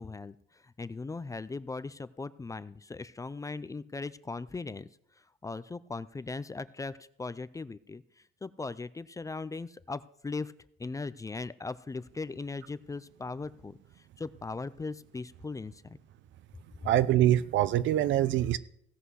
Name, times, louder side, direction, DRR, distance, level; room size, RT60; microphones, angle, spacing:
voice 1, 0.0-4.9 5.4-10.5 10.8-13.8 14.2-16.0 16.8-16.9, left 3 dB, 15° left, 15 dB, 0.4 m, -39 dB
voice 2, 16.8-18.6, right 12 dB, 70° right, 17 dB, 0.6 m, -24 dB
16.0 x 5.6 x 6.3 m, 0.71 s
cardioid pair, 105°, 20 cm